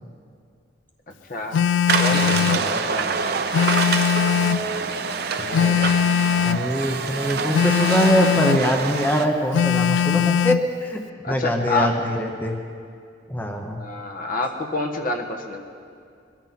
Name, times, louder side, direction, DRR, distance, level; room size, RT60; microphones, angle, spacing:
voice 1, 1.3-1.6 2.0-3.1 11.2-12.0 13.8-15.6, left 2 dB, 50° left, 3 dB, 1.3 m, -27 dB
Telephone, 1.5-2.7 3.5-4.7 5.5-6.7 7.5-8.7 9.5-10.7, left 8 dB, 80° left, 0.3 m, -20 dB
sound 1, 1.9-9.3, right 5 dB, 60° right, 0.8 m, -26 dB
voice 2, 2.1-2.8 5.4-5.8 6.4-12.5 13.3-13.8, equal, 10° left, 2 dB, 0.8 m, -23 dB
22.0 x 13.5 x 4.1 m, 2.3 s
head